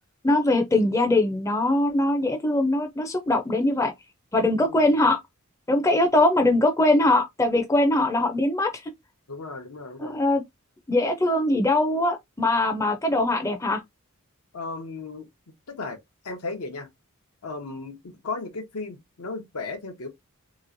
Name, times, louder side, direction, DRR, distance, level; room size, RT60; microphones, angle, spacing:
voice 1, 0.2-3.9 4.3-5.2 5.7-8.7 10.0-10.4 10.9-13.8, left 2 dB, 15° left, 0.4 m, -22 dB
voice 2, 4.6-4.9 9.3-10.2 14.5-16.0 16.2-16.9 17.4-20.1, left 3 dB, 80° left, 0.8 m, -35 dB
3.0 x 2.9 x 2.5 m
head